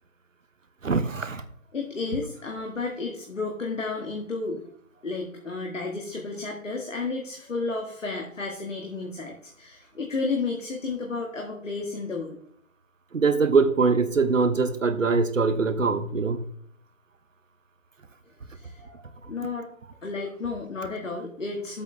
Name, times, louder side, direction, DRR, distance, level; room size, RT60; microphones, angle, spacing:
voice 1, 0.8-1.4 13.1-16.4, right 4 dB, 70° right, 10 dB, 1.2 m, -23 dB
voice 2, 1.7-4.6 5.0-12.4 18.5-19.7 20.0-21.8, left 3 dB, 65° left, 1 dB, 1.9 m, -32 dB
9.9 x 8.1 x 3.4 m, 0.64 s
figure-of-eight pair, 165°, 40 cm